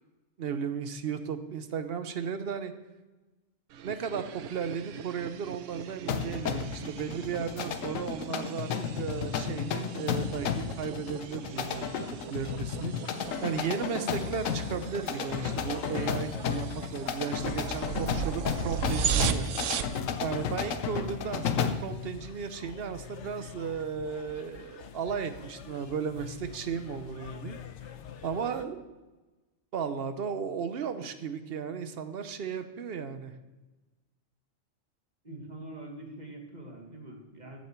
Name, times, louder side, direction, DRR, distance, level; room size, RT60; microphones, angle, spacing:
voice 1, 0.4-2.7 3.8-8.7 9.0-11.8 12.3-13.1 13.4-19.5 20.2-27.6 28.2-28.8 29.7-33.3, right 6 dB, 55° right, 10 dB, 0.9 m, -35 dB
sound 1, 3.7-20.0, right 8 dB, 75° right, 1.0 m, -37 dB
sound 2, 6.1-21.9, left 7 dB, 85° left, 1.1 m, -33 dB
sound 3, 13.2-28.6, left 8 dB, 65° left, 1.0 m, -47 dB
voice 2, 35.2-37.6, right 1 dB, 35° right, 1 dB, 1.9 m, -44 dB
14.0 x 7.3 x 4.5 m, 1.1 s
omnidirectional pair, 1.3 m